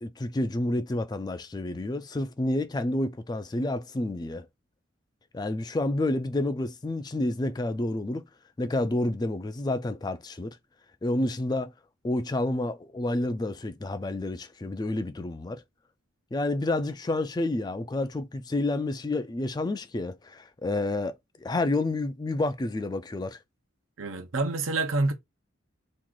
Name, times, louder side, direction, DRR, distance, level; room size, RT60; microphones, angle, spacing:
voice 1, 0.0-4.5 5.3-8.3 8.6-10.6 11.0-11.7 12.0-15.6 16.3-23.4, left 2 dB, 20° left, 0.3 m, -29 dB
voice 2, 24.0-25.1, right 2 dB, 80° right, 0.8 m, -27 dB
3.0 x 2.4 x 3.7 m
head